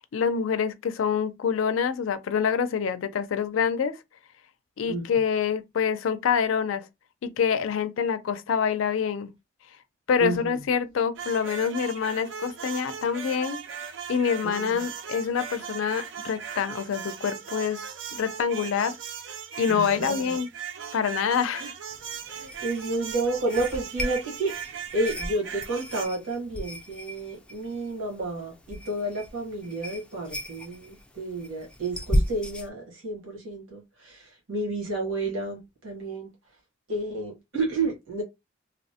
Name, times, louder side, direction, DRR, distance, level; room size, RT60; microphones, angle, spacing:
voice 1, 0.1-4.0 4.8-6.9 7.2-9.3 10.1-13.6 14.1-17.8 18.1-19.0 19.6-20.5 20.9-21.7, left 7 dB, 85° left, 0.4 m, -26 dB
voice 2, 10.2-10.6 14.4-14.8 19.7-20.4 21.6-21.7 22.3-24.5 24.9-36.3 36.9-38.2, right 2 dB, 85° right, 1.2 m, -31 dB
sound 1, 11.2-26.1, right 7 dB, 65° right, 0.4 m, -38 dB
sound 2, 21.9-32.7, equal, 5° left, 0.3 m, -35 dB
2.9 x 2.0 x 2.7 m
head